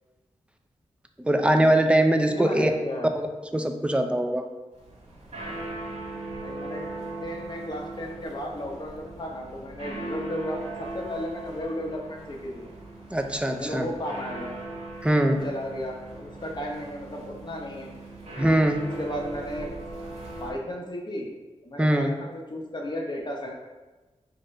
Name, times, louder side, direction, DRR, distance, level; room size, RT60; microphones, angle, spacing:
voice 1, 1.2-2.7 3.2-3.3 3.5-4.5 13.1-13.9 15.0-15.4 18.4-18.8 21.8-22.1, right 1 dB, 10° right, 6 dB, 0.4 m, -22 dB
voice 2, 2.3-3.1 6.4-12.7 13.6-14.5 15.2-18.0 19.0-19.7 20.4-21.3 21.6-23.6, left 1 dB, 40° left, 0 dB, 0.9 m, -34 dB
sound 1, 4.7-20.5, right 2 dB, 70° right, 1.4 m, -39 dB
4.2 x 2.5 x 4.8 m, 1.2 s
wide cardioid pair, 85°, 12 cm